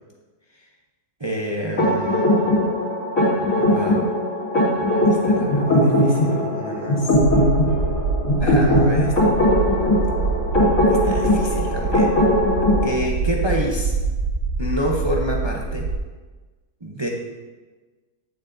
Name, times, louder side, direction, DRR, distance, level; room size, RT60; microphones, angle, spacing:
voice 1, 1.2-2.5 3.6-4.1 5.0-7.1 8.4-9.3 10.9-12.2 12.8-13.9 14.6-15.9 16.8-17.1, equal, 35° right, -2 dB, 0.4 m, -28 dB
sound 1, 1.8-12.8, left 1 dB, 55° left, 3.2 m, -19 dB
sound 2, 7.1-16.0, right 4 dB, 90° right, 1.3 m, -25 dB
9.1 x 8.1 x 2.6 m, 1.3 s
omnidirectional pair, 1.7 m